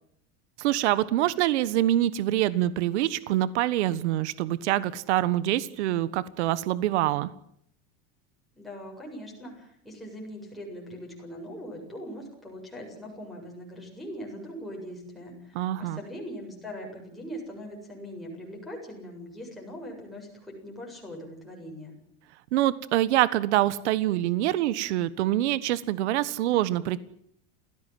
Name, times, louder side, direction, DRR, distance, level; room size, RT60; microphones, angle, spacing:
voice 1, 0.6-7.3 15.5-16.0 22.5-27.0, right 14 dB, 80° right, 17 dB, 1.5 m, -25 dB
voice 2, 8.5-21.9, equal, ahead, -3 dB, 7.7 m, -41 dB
29.0 x 17.0 x 7.7 m, 0.70 s
supercardioid pair, 160°, 34 cm